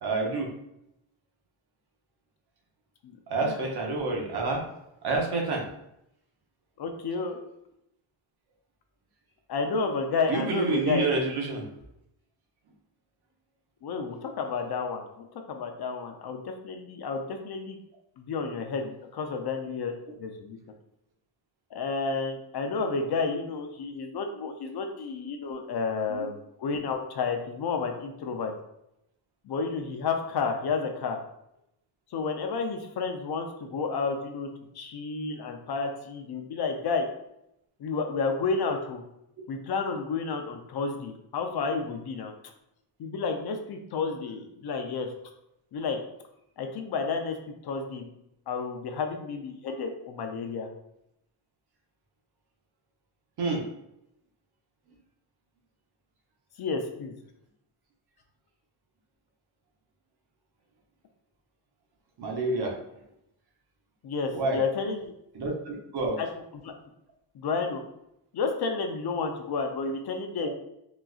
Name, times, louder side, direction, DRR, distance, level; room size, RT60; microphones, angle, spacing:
voice 1, 0.0-0.5 3.3-4.6 5.0-5.7 10.3-11.7 26.1-26.3 53.4-53.6 62.2-62.8 64.3-64.6 65.3-66.2 70.4-70.5, right 3 dB, 55° right, 1 dB, 0.9 m, -28 dB
voice 2, 6.8-7.4 9.5-11.2 13.8-17.8 18.2-20.6 21.7-28.5 29.4-31.2 32.1-34.5 34.7-37.1 37.8-39.0 39.5-42.3 43.0-45.1 45.7-46.0 46.6-47.4 47.6-48.1 48.5-50.7 56.6-57.2 64.0-65.1 66.2-66.3 66.5-66.7 67.3-67.8 68.3-70.5, left 4 dB, 55° left, 4 dB, 0.6 m, -31 dB
4.0 x 2.3 x 2.4 m, 0.81 s
cardioid pair, 100°, 46 cm